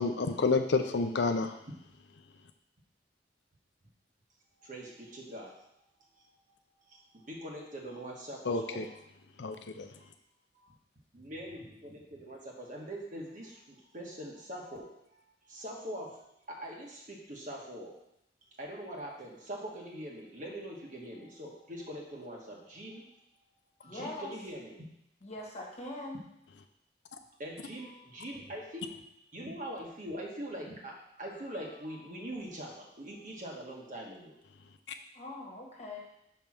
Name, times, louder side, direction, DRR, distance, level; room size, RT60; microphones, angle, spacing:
voice 1, 0.0-1.6 8.4-8.9 9.4-9.9, left 4 dB, 70° left, 7 dB, 0.5 m, -29 dB
voice 2, 4.6-5.6 6.2-6.3 6.9-8.9 10.5-10.7 11.1-17.9 18.6-23.0 23.8-24.8 27.4-29.0 29.3-34.3, equal, 45° right, -1 dB, 1.5 m, -43 dB
voice 3, 23.9-24.3 25.2-26.2 35.1-36.0, left 2 dB, 35° left, -1 dB, 1.5 m, -42 dB
5.5 x 4.7 x 6.0 m, 0.79 s
head